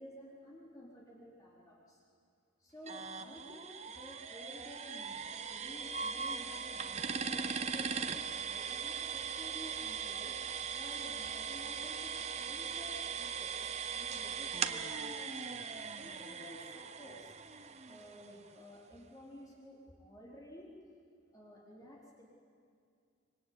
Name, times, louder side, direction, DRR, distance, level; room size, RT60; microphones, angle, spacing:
voice 1, 0.0-2.0 2.6-5.2 5.5-17.3 17.8-20.7 21.3-22.2, left 1 dB, 20° left, -5 dB, 4.2 m, -53 dB
sound 1, 2.9-18.5, right 6 dB, 35° right, 0.8 m, -39 dB
25.5 x 23.5 x 9.7 m, 2.3 s
head